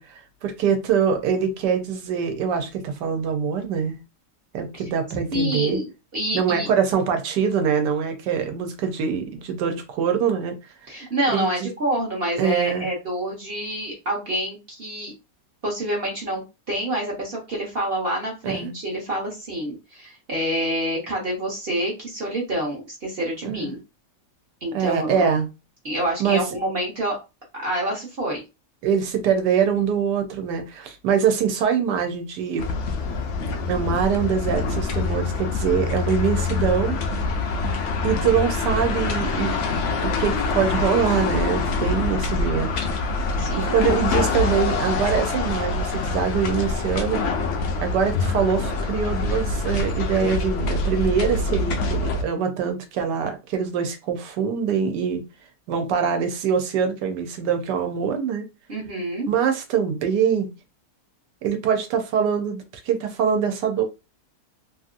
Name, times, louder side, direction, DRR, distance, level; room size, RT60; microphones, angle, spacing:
voice 1, 0.0-4.0 4.5-5.8 6.3-10.6 11.3-11.7 12.4-12.9 18.4-18.7 23.4-23.7 24.7-25.5 26.2-26.4 28.8-32.7 33.7-37.0 38.0-39.6 40.0-42.7 43.5-47.2 47.8-55.2 55.7-58.4 59.3-60.5 61.4-63.8, right 7 dB, 80° right, 1.3 m, -24 dB
voice 2, 5.3-6.7 10.9-15.1 15.6-23.8 24.6-25.3 25.8-27.2 27.6-28.4 43.4-43.9 58.7-59.3, right 1 dB, 45° right, 1.0 m, -27 dB
sound 1, 32.6-52.2, left 3 dB, 70° left, 0.7 m, -25 dB
2.9 x 2.7 x 2.5 m
omnidirectional pair, 1.8 m